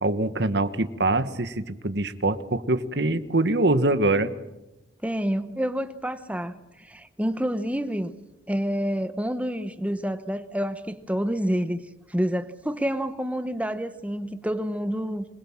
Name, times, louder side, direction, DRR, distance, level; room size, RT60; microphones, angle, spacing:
voice 1, 0.0-4.3, right 2 dB, 65° right, 11 dB, 1.5 m, -24 dB
voice 2, 5.0-8.1 8.5-15.2, equal, 10° right, 10 dB, 1.0 m, -28 dB
26.0 x 21.0 x 7.4 m, 0.98 s
head